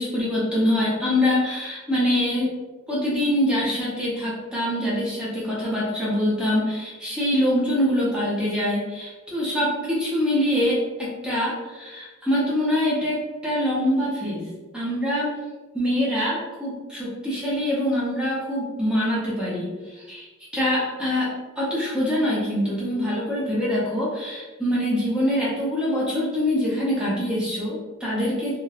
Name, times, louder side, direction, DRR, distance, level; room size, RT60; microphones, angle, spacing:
voice 1, 0.0-2.5 2.9-15.3 15.7-20.3 20.5-28.6, left 1 dB, 5° right, -8 dB, 0.6 m, -24 dB
2.9 x 2.1 x 2.3 m, 1.2 s
head